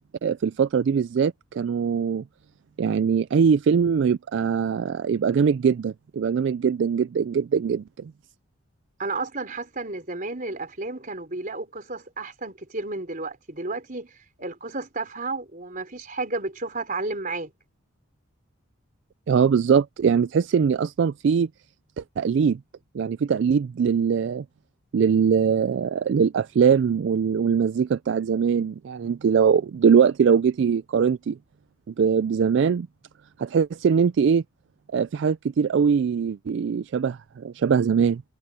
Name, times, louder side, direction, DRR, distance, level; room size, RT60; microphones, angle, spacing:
voice 1, 0.2-2.2 2.8-8.1 19.3-21.5 22.0-22.6 22.9-24.4 24.9-31.4 31.9-32.9 33.4-34.4 34.9-38.2, right 6 dB, 55° right, 0.3 m, -22 dB
voice 2, 9.0-14.1 14.4-17.5, right 3 dB, 40° right, 4.4 m, -32 dB
head